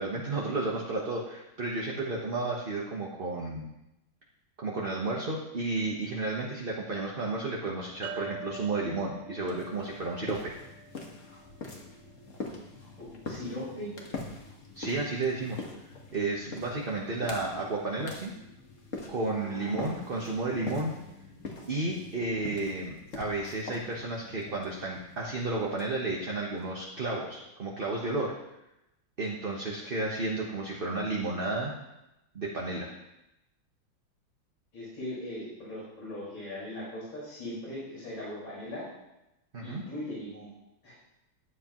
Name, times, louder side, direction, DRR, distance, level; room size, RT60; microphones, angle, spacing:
voice 1, 0.0-3.7 4.6-10.5 14.7-15.6 16.1-18.3 19.1-21.0 21.7-28.3 29.2-31.7 32.3-32.9 39.5-39.8, right 2 dB, 35° right, -3 dB, 1.1 m, -32 dB
sound 1, 8.0-11.5, right 5 dB, 70° right, 1.2 m, -44 dB
sound 2, 9.4-26.9, left 3 dB, 40° left, 1.7 m, -44 dB
voice 2, 13.0-13.9 19.4-19.7 34.7-38.9 39.6-40.5 40.8-40.9, left 1 dB, 65° left, -8 dB, 5.8 m, -39 dB
14.0 x 9.8 x 3.1 m, 0.91 s
omnidirectional pair, 2.3 m